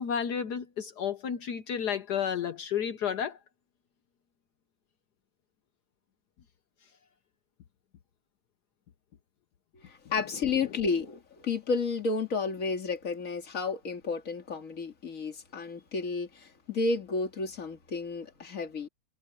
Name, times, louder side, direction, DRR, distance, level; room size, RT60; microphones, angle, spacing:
voice 1, 0.0-3.4 10.7-10.8, left 8 dB, 65° left, 1.4 m, -32 dB
voice 2, 9.7-18.9, left 4 dB, 45° left, 2.5 m, -32 dB
omnidirectional pair, 2.0 m